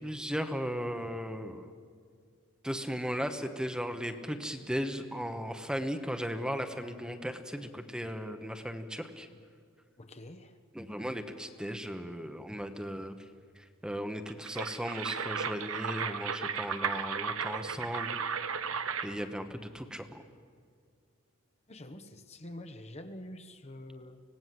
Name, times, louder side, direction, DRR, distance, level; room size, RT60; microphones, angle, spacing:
voice 1, 0.0-1.7 2.6-9.3 10.7-13.3 13.6-18.2 19.0-20.2, equal, 5° right, 7 dB, 1.1 m, -36 dB
voice 2, 10.0-10.6 17.8-17.9 21.7-24.2, left 1 dB, 30° left, 7 dB, 1.2 m, -46 dB
sound 1, 14.3-19.2, right 6 dB, 75° right, 1.2 m, -35 dB
25.5 x 18.0 x 7.7 m, 2.1 s
head